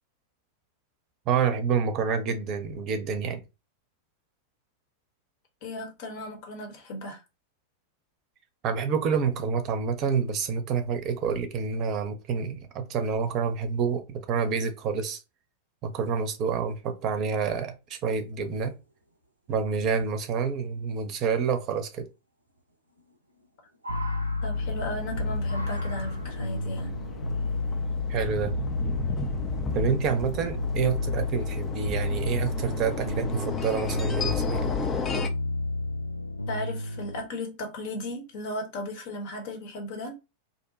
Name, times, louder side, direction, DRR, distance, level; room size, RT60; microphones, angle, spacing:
voice 1, 1.3-3.4 8.6-15.2 15.8-18.7 19.5-22.1 28.1-28.5 29.7-34.7, right 6 dB, 35° right, 0.6 m, -28 dB
voice 2, 5.6-7.2 24.4-27.0 36.5-40.1, left 1 dB, 50° left, 0.9 m, -36 dB
sound 1, 18.5-18.6 18.8-18.9 19.5-20.1 21.6-21.7 23.0-23.5 23.7-25.0 25.4-26.5 27.4-27.5, right 2 dB, 80° right, 0.4 m, -42 dB
sound 2, 23.9-37.2, left 2 dB, 85° left, 0.4 m, -31 dB
sound 3, 24.5-35.3, left 4 dB, 25° left, 0.4 m, -34 dB
2.6 x 2.2 x 3.8 m
figure-of-eight pair, 90°, 0 cm